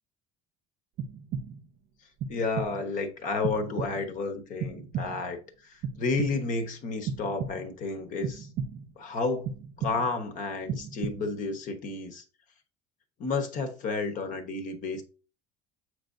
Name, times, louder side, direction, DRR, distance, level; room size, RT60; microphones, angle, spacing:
sound 1, 1.0-1.8 2.2-2.9 3.4-4.2 4.6-5.4 5.8-6.6 7.1-7.9 8.2-9.0 9.5-10.3 10.7-11.5, right 6 dB, 50° right, 0.7 m, -36 dB
voice 1, 2.3-8.5 9.0-12.2 13.2-15.0, left 3 dB, 40° left, 1.1 m, -31 dB
7.8 x 4.8 x 2.6 m
cardioid pair, 170°, 20 cm